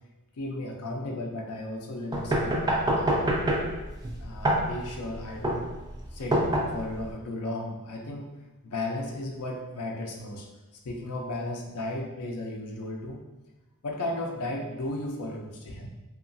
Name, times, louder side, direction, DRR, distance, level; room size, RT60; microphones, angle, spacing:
voice 1, 0.3-3.3 4.2-5.7 6.1-8.3 8.6-10.5 10.8-13.2 13.8-15.9, left 1 dB, 70° left, 1 dB, 0.5 m, -35 dB
sound 1, 2.1-7.1, right 1 dB, 20° right, 0.3 m, -27 dB
2.8 x 2.3 x 2.6 m, 1.1 s
head